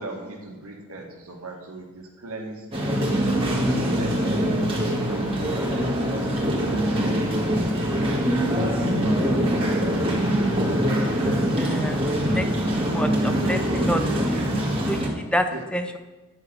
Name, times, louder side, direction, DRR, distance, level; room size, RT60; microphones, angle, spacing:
voice 1, 0.0-3.0 3.5-4.1 4.6-5.2 6.8-7.4 7.9-9.1 15.5-15.6, right 2 dB, 90° right, 1 dB, 2.1 m, -39 dB
sound 1, 2.7-15.1, equal, 25° right, 2.0 m, -23 dB
voice 2, 11.6-12.0 12.3-12.5 12.8-14.0 14.3-14.5 14.7-16.0, equal, 5° left, 7 dB, 0.6 m, -28 dB
11.0 x 6.4 x 6.4 m, 1.2 s
head